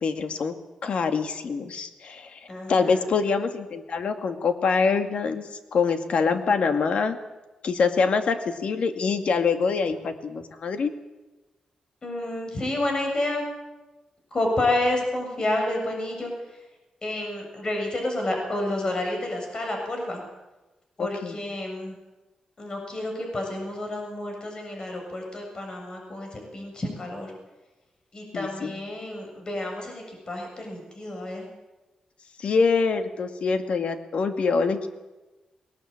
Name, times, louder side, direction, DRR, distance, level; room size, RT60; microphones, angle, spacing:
voice 1, 0.0-0.5 0.8-2.4 2.7-5.4 5.7-7.2 7.6-10.9 21.0-21.4 28.3-28.8 32.4-34.9, left 5 dB, 65° left, 7 dB, 2.1 m, -25 dB
voice 2, 2.5-3.0 12.0-13.4 14.3-16.3 17.0-20.2 21.0-22.0 22.6-27.3 28.1-31.5, left 1 dB, 40° left, 2 dB, 7.3 m, -29 dB
20.5 x 19.5 x 8.8 m, 1.1 s
cardioid pair, 90°, 2 cm